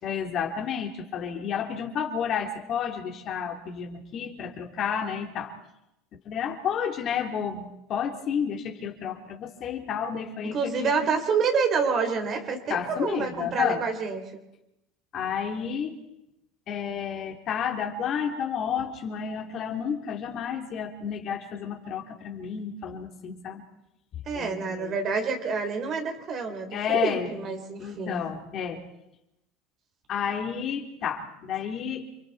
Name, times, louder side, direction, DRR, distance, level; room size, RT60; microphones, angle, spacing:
voice 1, 0.0-5.5 6.2-11.1 12.7-13.8 15.1-16.0 16.7-23.6 24.1-24.9 26.7-27.3 27.8-28.8 30.1-32.1, left 7 dB, 50° left, 2 dB, 3.2 m, -31 dB
voice 2, 10.5-14.2 24.3-28.2, right 5 dB, 45° right, 4 dB, 4.0 m, -28 dB
29.0 x 23.5 x 4.2 m, 0.88 s
hypercardioid pair, 90°, 0 cm